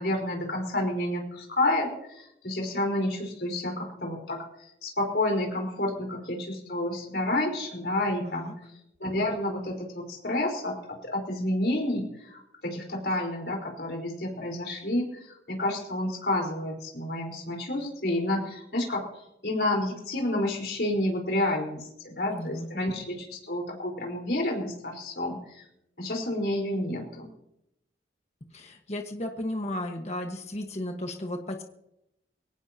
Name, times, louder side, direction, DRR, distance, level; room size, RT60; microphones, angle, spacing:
voice 1, 0.0-4.4 4.8-8.5 9.0-25.7 26.0-27.3, left 1 dB, 65° left, 1 dB, 4.6 m, -30 dB
voice 2, 8.2-8.5 22.3-22.7 28.5-31.6, left 1 dB, 40° left, 3 dB, 1.5 m, -34 dB
22.5 x 18.0 x 3.0 m, 0.82 s
head